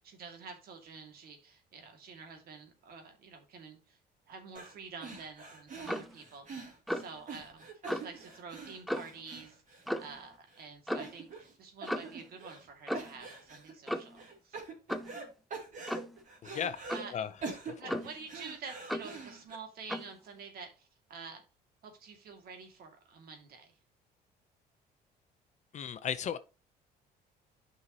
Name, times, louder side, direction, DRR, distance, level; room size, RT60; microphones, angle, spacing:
voice 1, 0.0-4.0 4.3-6.5 6.9-9.6 10.0-14.6 16.9-17.3 17.8-21.4 21.8-23.8, right 5 dB, 65° right, 2.3 m, -48 dB
sound 1, 4.5-4.7 5.0-10.2 10.5-10.6 11.0-11.5 11.8-12.7 12.9-13.7 14.2-15.2 15.5-17.0 17.4-19.5, right 4 dB, 50° right, 2.8 m, -45 dB
Clock, 5.9-6.2 6.9-7.2 7.9-8.1 8.9-9.2 9.9-10.2 10.9-11.1 11.9-12.2 12.9-13.2 13.9-14.2 14.9-15.2 15.9-16.2 16.9-17.2 17.9-18.3 18.9-19.2 19.9-20.1, equal, ahead, 0.6 m, -36 dB
voice 2, 16.4-16.8 17.1-17.3 17.6-17.7 25.7-26.4, left 8 dB, 45° left, 0.7 m, -35 dB
9.3 x 5.5 x 2.9 m
cardioid pair, 110°, 17 cm